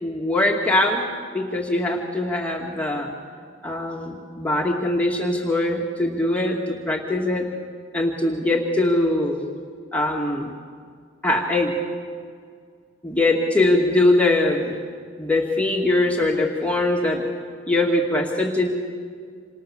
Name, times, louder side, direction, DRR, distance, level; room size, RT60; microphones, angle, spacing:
voice 1, 0.0-1.0 1.3-3.1 3.6-7.4 7.9-9.5 9.9-10.5 11.2-11.8 13.0-14.8 15.2-17.2 17.7-18.7, left 2 dB, 5° left, -2 dB, 2.3 m, -22 dB
28.0 x 28.0 x 7.2 m, 2.1 s
head